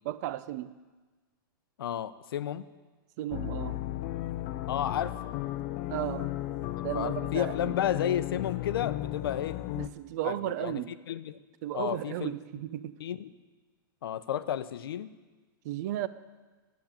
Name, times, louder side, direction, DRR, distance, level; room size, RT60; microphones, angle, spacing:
voice 1, 0.0-0.7 3.2-3.8 5.9-6.3 6.8-7.8 9.8-10.9 11.6-13.0 15.6-16.1, right 13 dB, 50° right, 0.6 m, -34 dB
voice 2, 1.8-2.7 4.7-5.3 6.9-9.6 10.2-10.8 11.1-11.4 11.7-12.3 13.0-13.3 14.0-15.1, left 10 dB, 85° left, 0.7 m, -32 dB
sound 1, 3.3-9.9, left 14 dB, 40° left, 0.6 m, -35 dB
12.0 x 8.4 x 8.8 m
supercardioid pair, 150°, 12 cm